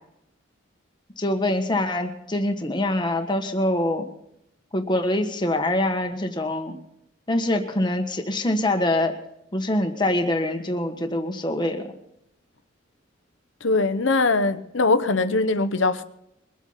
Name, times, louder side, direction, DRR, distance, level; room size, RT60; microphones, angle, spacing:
voice 1, 1.2-4.1 4.7-6.8 7.3-9.1 9.5-11.8, left 1 dB, 25° left, 1.3 m, -24 dB
voice 2, 13.6-16.0, left 3 dB, 75° left, 0.9 m, -21 dB
22.5 x 8.2 x 5.7 m
head